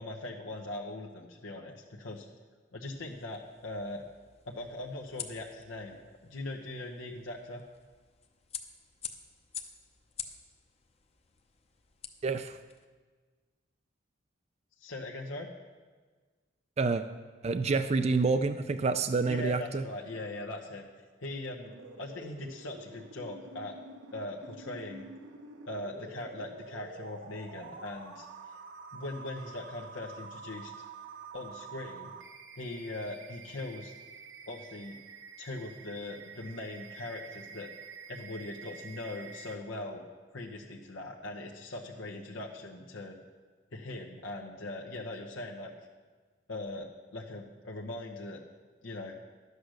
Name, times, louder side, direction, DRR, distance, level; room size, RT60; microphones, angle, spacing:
voice 1, 0.0-2.3 2.7-4.0 4.5-6.0 6.2-7.6 14.8-15.5 19.3-20.9 21.2-21.7 22.0-23.7 24.1-25.1 25.7-28.3 28.9-30.7 31.3-32.1 32.6-33.9 34.5-35.0 35.4-37.7 38.1-40.0 40.3-43.2 43.7-45.7 46.5-48.4 48.8-49.2, left 2 dB, 90° left, -1 dB, 1.0 m, -40 dB
sound 1, 2.9-12.9, left 7 dB, 35° left, 0.7 m, -48 dB
voice 2, 12.2-12.6 16.8-17.0 17.4-19.8, right 4 dB, 35° right, 9 dB, 0.4 m, -28 dB
sound 2, 21.6-39.6, right 4 dB, 80° right, 1.0 m, -48 dB
12.0 x 8.1 x 6.4 m, 1.4 s
head